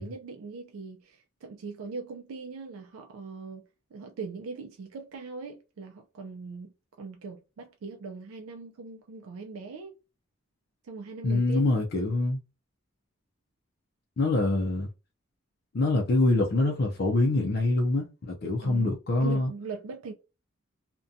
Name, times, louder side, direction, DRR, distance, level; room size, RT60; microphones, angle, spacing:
voice 1, 0.0-3.6 3.9-6.7 7.0-9.9 10.9-11.8 18.6-18.9 19.2-20.1, right 4 dB, 80° right, 0.4 m, -40 dB
voice 2, 11.2-12.4 14.2-14.9 15.7-19.5, left 2 dB, 45° left, 0.4 m, -25 dB
2.5 x 2.1 x 2.6 m
head